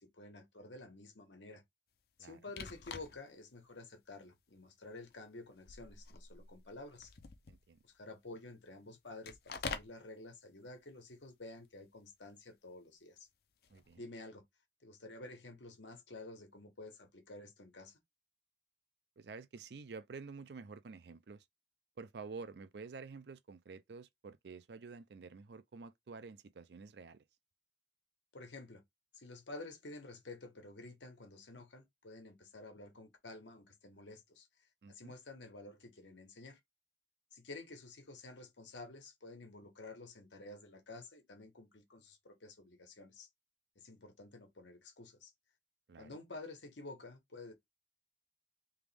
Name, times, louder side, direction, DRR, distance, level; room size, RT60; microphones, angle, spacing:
voice 1, 0.0-1.6 2.2-7.1 7.8-13.3 13.9-14.4 14.8-18.0 28.3-28.8 29.1-34.5 34.9-36.6 37.3-43.3 43.7-45.3 46.0-47.5, left 2 dB, 90° left, 1.3 m, -51 dB
sound 1, 2.5-3.4 3.9-4.0 4.9-5.2 5.5-7.8 9.3-10.0 13.6-14.0, left 4 dB, 55° left, 0.6 m, -46 dB
voice 2, 7.5-7.8 13.7-14.0 19.2-21.4 22.0-27.2 34.8-35.1 45.9-46.2, right 4 dB, 70° right, 0.4 m, -50 dB
3.4 x 3.0 x 3.4 m
head